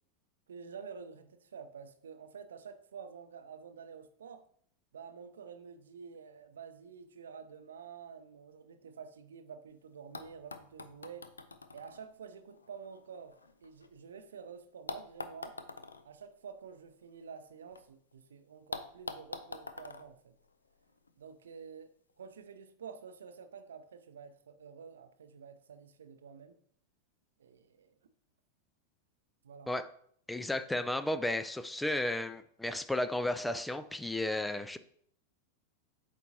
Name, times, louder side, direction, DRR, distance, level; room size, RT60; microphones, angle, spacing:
voice 1, 0.5-4.4 4.9-11.3 11.7-13.4 13.6-15.6 16.0-20.3 21.2-26.6 27.4-28.0 29.4-29.7, right 6 dB, 65° right, 0.6 m, -49 dB
sound 1, 9.7-9.8 10.1-14.2 14.9-17.8 18.1-18.2 18.7-21.1 22.1-22.2, left 4 dB, 75° left, 0.5 m, -46 dB
voice 2, 30.3-34.8, left 1 dB, 5° left, 0.3 m, -33 dB
8.2 x 4.5 x 2.7 m
figure-of-eight pair, 90°, 0 cm